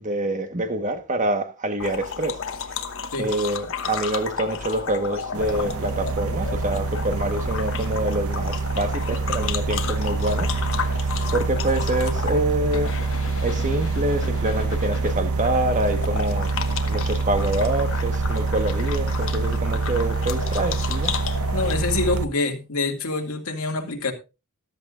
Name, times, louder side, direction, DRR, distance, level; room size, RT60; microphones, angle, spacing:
voice 1, 0.0-2.4 3.2-10.5 10.8-11.0 11.3-13.0 13.4-16.5 16.9-21.1, right 1 dB, 35° right, 1.4 m, -26 dB
sound 1, 1.8-21.7, left 6 dB, 65° left, 1.2 m, -33 dB
sound 2, 4.6-8.5 9.4-10.7, left 1 dB, 40° left, 1.0 m, -43 dB
sound 3, 5.3-22.3, right 3 dB, 80° right, 0.7 m, -26 dB
voice 2, 21.5-24.1, left 3 dB, 90° left, 2.3 m, -26 dB
14.0 x 12.5 x 2.5 m
head